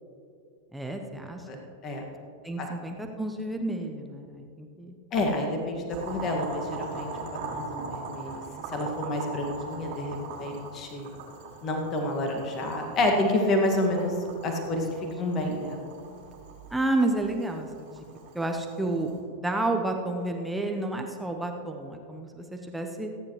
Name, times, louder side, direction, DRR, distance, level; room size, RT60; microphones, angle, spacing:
voice 1, 0.7-1.4 2.4-4.9 15.0-15.1 15.4-15.7 16.7-17.9 18.3-23.1, right 2 dB, 5° right, 3 dB, 1.0 m, -30 dB
voice 2, 5.1-8.4 8.7-11.1 11.6-14.8 15.2-15.8, left 1 dB, 30° left, 2 dB, 1.9 m, -29 dB
Boiling, 5.9-19.2, right 4 dB, 50° right, 2.9 m, -41 dB
26.0 x 10.5 x 3.2 m, 2.5 s
figure-of-eight pair, 90°, 0 cm